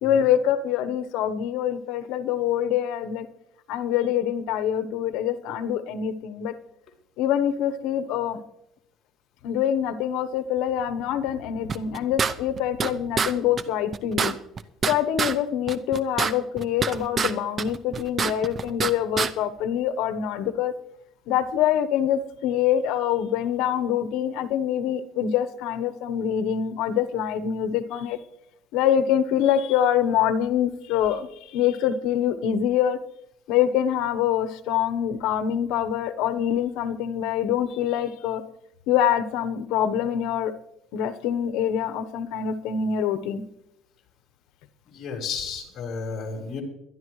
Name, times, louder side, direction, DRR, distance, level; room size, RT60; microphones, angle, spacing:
voice 1, 0.0-3.3 3.7-6.5 7.2-8.4 9.4-14.4 14.9-20.7 21.3-28.2 28.7-31.3 31.5-33.0 33.5-38.4 38.9-40.5 40.9-43.4, left 9 dB, 85° left, 10 dB, 1.0 m, -25 dB
sound 1, 11.7-12.9 13.2-13.3 13.6-13.7 13.9-15.4 15.7-17.3 17.6-18.9 19.2-19.3, right 5 dB, 35° right, 0.6 m, -25 dB
voice 2, 44.9-46.6, left 5 dB, 45° left, 0 dB, 4.2 m, -33 dB
23.0 x 11.0 x 3.2 m, 0.80 s
cardioid pair, 130°, 0 cm